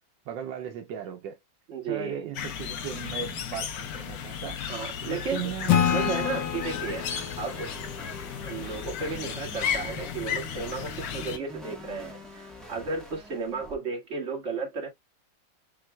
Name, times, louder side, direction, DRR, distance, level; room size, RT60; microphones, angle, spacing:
voice 1, 0.3-1.4 1.9-4.6 5.0-5.8, right 9 dB, 80° right, 1.3 m, -37 dB
voice 2, 1.7-2.3 4.7-5.5 5.8-7.1 7.4-7.7 8.4-14.9, right 4 dB, 40° right, 1.9 m, -34 dB
sound 1, 2.3-11.4, left 8 dB, 65° left, 1.1 m, -35 dB
Acoustic guitar / Strum, 5.7-9.1, left 9 dB, 80° left, 1.5 m, -28 dB
sound 2, 5.7-13.7, left 1 dB, ahead, 0.9 m, -44 dB
7.4 x 2.6 x 2.2 m
omnidirectional pair, 2.0 m